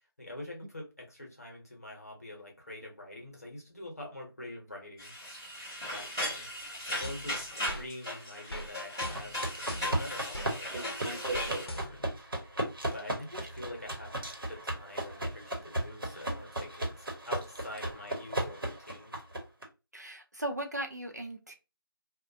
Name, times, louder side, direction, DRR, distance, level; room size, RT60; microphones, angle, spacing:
voice 1, 0.0-5.1 5.9-6.5 6.9-12.5 12.9-14.1 14.5-19.2, left 1 dB, 40° left, 0.9 m, -45 dB
sound 1, 5.0-11.7, equal, 10° left, 0.7 m, -37 dB
sound 2, 7.0-7.9 8.5-8.7 9.0-10.5 11.3-12.2, left 1 dB, 90° left, 0.6 m, -41 dB
sound 3, 9.1-19.6, right 1 dB, 65° right, 1.0 m, -36 dB
voice 2, 19.9-21.6, right 1 dB, 45° right, 0.4 m, -37 dB
2.4 x 2.2 x 2.6 m
figure-of-eight pair, 175°, 12 cm